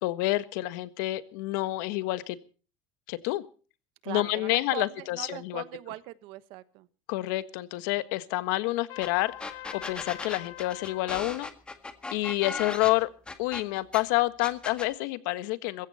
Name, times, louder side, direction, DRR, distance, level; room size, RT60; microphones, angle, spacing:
voice 1, 0.0-2.4 3.1-3.4 4.1-5.6 7.1-9.3 9.7-11.5 12.1-13.1 13.4-15.9, left 19 dB, 85° left, 13 dB, 1.5 m, -28 dB
voice 2, 4.0-6.9, right 17 dB, 60° right, 15 dB, 1.3 m, -40 dB
Trumpet, 8.9-11.1, left 15 dB, 50° left, 1.4 m, -44 dB
sound 1, 9.0-9.1 9.4-14.0 14.4-14.9, left 3 dB, 10° left, 1.8 m, -37 dB
21.5 x 16.0 x 4.3 m, 0.39 s
cardioid pair, 165°, 10 cm